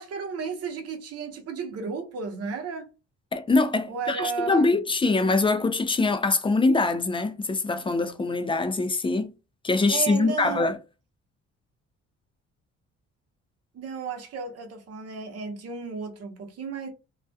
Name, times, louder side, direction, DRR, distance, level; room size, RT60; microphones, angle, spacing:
voice 1, 0.0-2.9 3.9-4.8 9.9-10.7 13.7-16.9, right 6 dB, 55° right, 0.7 m, -33 dB
voice 2, 3.3-9.3 9.6-10.8, left 3 dB, 20° left, 0.3 m, -23 dB
2.3 x 2.1 x 2.6 m
cardioid pair, 90°, 30 cm